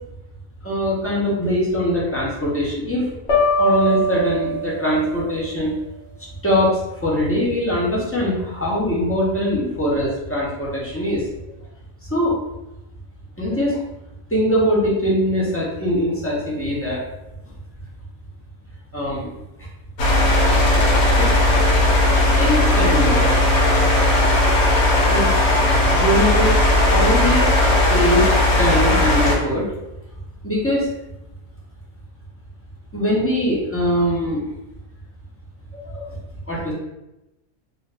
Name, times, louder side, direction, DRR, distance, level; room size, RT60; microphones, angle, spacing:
voice 1, 0.6-3.1 3.6-5.7 6.4-11.3 12.1-12.4 13.4-13.8 14.3-17.0 18.9-19.3 19.6-19.7 20.3-20.6 21.1-21.3 22.4-23.5 23.8-24.1 25.1-25.4 25.9-26.6 26.8-27.5 27.9-28.3 28.6-29.7 30.4-30.9 32.9-34.4 35.7-36.2 36.5-36.7, equal, 20° left, -7 dB, 0.4 m, -22 dB
sound 1, 3.3-5.2, equal, 55° left, 1.0 m, -21 dB
sound 2, 20.0-29.3, left 1 dB, 80° left, 1.2 m, -17 dB
2.5 x 2.4 x 3.2 m, 0.94 s
omnidirectional pair, 1.6 m